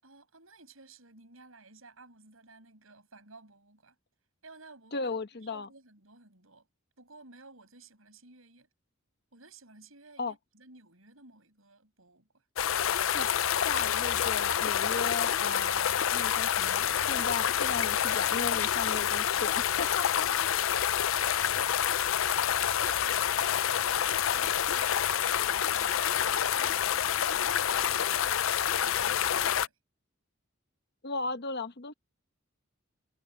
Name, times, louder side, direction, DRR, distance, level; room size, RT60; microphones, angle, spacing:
voice 1, 0.0-4.0 4.4-5.1 5.4-6.7 7.0-8.7 9.3-12.4 20.2-24.0 24.3-28.4 28.7-29.8, right 3 dB, 80° right, 7.1 m, -54 dB
voice 2, 4.9-5.7 10.2-10.3 13.1-13.3 13.6-20.3 31.0-31.9, left 4 dB, 55° left, 1.0 m, -36 dB
sound 1, 12.6-29.7, left 9 dB, 70° left, 0.5 m, -28 dB
head